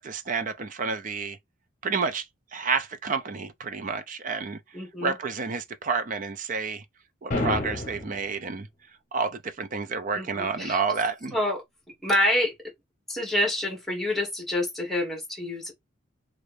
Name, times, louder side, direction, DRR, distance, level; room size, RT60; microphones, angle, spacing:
voice 1, 0.0-1.4 1.8-2.3 2.5-4.6 5.0-6.8 7.2-8.7 9.1-11.3, right 5 dB, 40° right, 0.4 m, -29 dB
voice 2, 4.7-5.1 10.1-10.8 11.3-11.6 12.0-12.5 13.1-15.7, left 1 dB, ahead, 1.2 m, -27 dB
sound 1, 7.3-8.3, left 1 dB, 35° left, 0.8 m, -29 dB
3.1 x 2.5 x 3.2 m
head